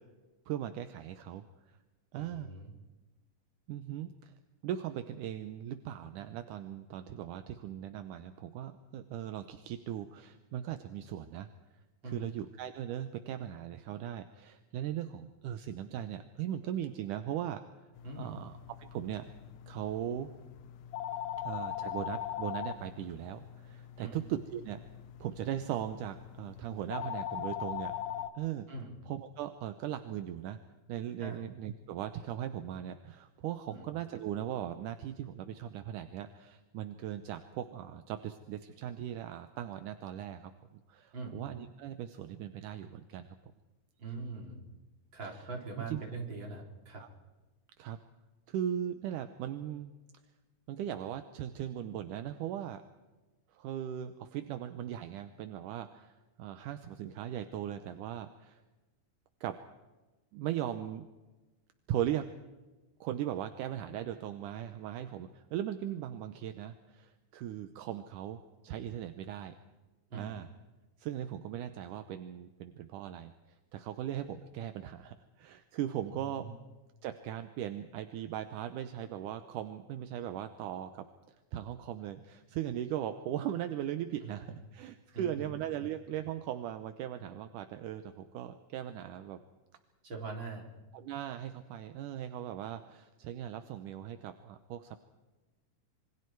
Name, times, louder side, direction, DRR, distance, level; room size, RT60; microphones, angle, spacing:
voice 1, 0.5-1.8 2.1-2.5 3.7-4.3 4.6-11.5 12.0-17.6 18.2-18.5 18.8-19.3 19.7-20.3 21.4-24.8 25.2-27.9 28.4-28.7 29.1-30.6 30.9-40.5 40.9-43.3 45.2-45.5 45.8-46.0 47.0-47.1 47.8-48.0 48.5-49.9 50.7-52.8 53.5-58.6 59.4-59.6 60.3-61.1 61.9-62.3 63.0-69.5 70.1-70.5 71.0-73.3 73.7-76.5 77.0-89.4 90.9-95.0, right 11 dB, 75° right, 8 dB, 2.4 m, -39 dB
voice 2, 2.2-2.7 12.0-12.3 18.0-18.4 24.0-24.2 28.7-28.9 31.2-31.4 33.7-33.9 41.1-41.4 44.0-44.6 45.1-47.0 70.1-70.4 76.2-76.5 85.1-85.5 90.0-90.7, right 3 dB, 35° right, 0 dB, 4.6 m, -42 dB
sound 1, 18.0-28.3, left 11 dB, 80° left, 2.4 m, -41 dB
27.5 x 24.5 x 4.7 m, 1.2 s
omnidirectional pair, 3.8 m